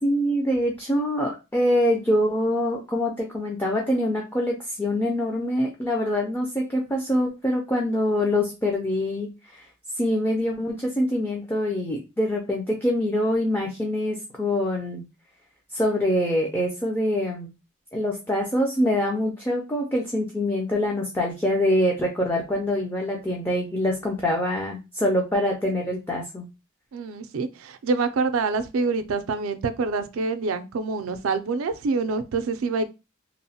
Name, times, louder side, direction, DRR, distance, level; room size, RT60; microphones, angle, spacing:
voice 1, 0.0-9.6 10.0-15.0 15.7-17.5 17.9-26.5, left 1 dB, 10° left, 0.4 m, -25 dB
voice 2, 26.9-32.9, right 4 dB, 85° right, 0.4 m, -26 dB
2.9 x 2.0 x 2.7 m
head